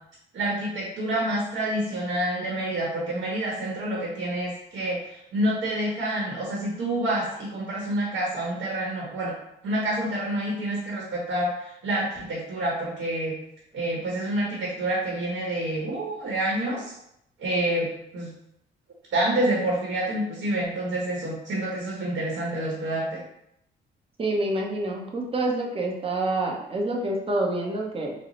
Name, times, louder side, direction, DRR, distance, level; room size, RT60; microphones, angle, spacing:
voice 1, 0.3-9.3 9.6-13.3 13.7-16.9 17.4-18.3 19.1-23.2, right 1 dB, 70° right, -3 dB, 0.9 m, -28 dB
voice 2, 24.2-28.1, right 2 dB, 30° right, 0 dB, 0.7 m, -27 dB
3.7 x 2.0 x 3.0 m, 0.78 s
cardioid pair, 90°, 20 cm